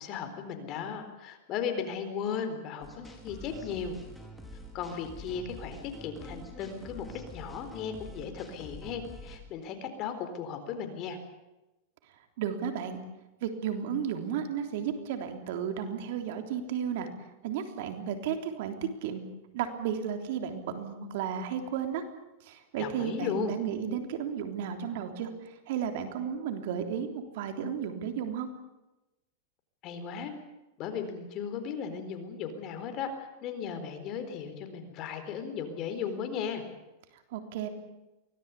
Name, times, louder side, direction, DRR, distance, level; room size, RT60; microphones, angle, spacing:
voice 1, 0.0-4.0 4.7-11.2 22.8-23.5 29.8-30.3 30.8-33.1 33.4-36.6, left 7 dB, 40° left, 7 dB, 4.1 m, -36 dB
sound 1, 2.8-9.4, equal, ahead, 4.4 m, -46 dB
voice 2, 12.4-13.0 13.4-17.1 17.4-18.8 19.0-19.2 19.5-22.0 22.4-28.5 37.3-37.7, right 8 dB, 65° right, 6 dB, 3.4 m, -33 dB
24.0 x 18.0 x 8.4 m, 1.0 s
supercardioid pair, 140°, 0 cm